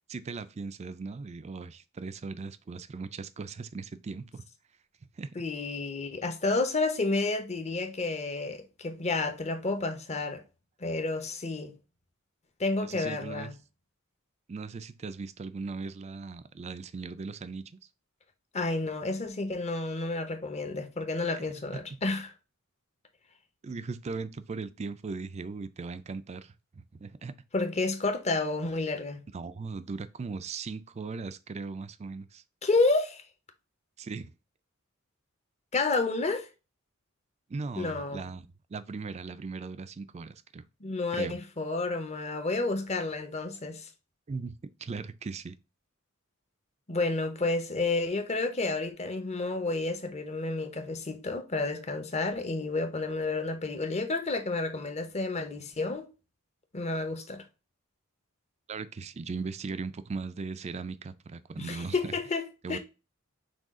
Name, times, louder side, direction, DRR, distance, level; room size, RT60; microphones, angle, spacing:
voice 1, 0.1-4.4 5.2-5.3 12.7-13.5 14.5-17.8 21.3-21.4 23.6-27.3 29.3-32.4 34.0-34.3 37.5-40.6 41.1-41.4 44.3-44.5 44.8-45.6 58.7-62.2 62.6-62.8, right 4 dB, 30° right, 0.4 m, -38 dB
voice 2, 5.4-10.4 10.8-11.7 12.6-13.5 18.5-22.3 27.5-29.2 32.6-33.2 35.7-36.5 37.7-38.2 40.8-43.9 46.9-56.1 56.7-57.4 61.6-62.4 62.7-62.8, left 3 dB, 30° left, 0.8 m, -30 dB
6.1 x 2.4 x 3.6 m
head